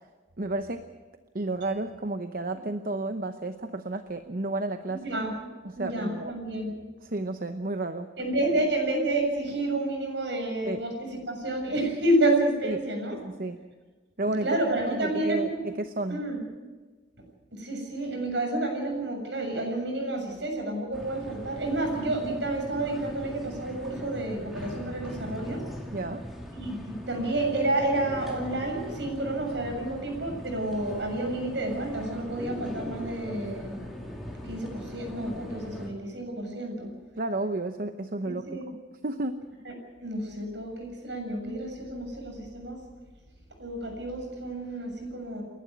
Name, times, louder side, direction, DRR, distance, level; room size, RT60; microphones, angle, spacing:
voice 1, 0.4-0.9 1.3-5.0 5.6-6.3 7.0-8.1 10.7-10.8 12.6-12.8 13.2-13.6 14.2-14.6 14.9-16.2 25.9-26.3 37.2-39.5, right 2 dB, 50° right, 8 dB, 0.9 m, -32 dB
voice 2, 4.9-5.3 5.8-6.7 8.2-13.2 14.2-15.7 16.1-16.4 17.5-25.6 26.5-34.1 34.4-36.9 38.2-38.7 40.0-42.8 43.6-45.4, right 1 dB, 70° right, 3 dB, 7.2 m, -30 dB
sound 1, 20.9-35.9, equal, ahead, 3.6 m, -40 dB
29.0 x 11.5 x 9.6 m, 1.3 s
head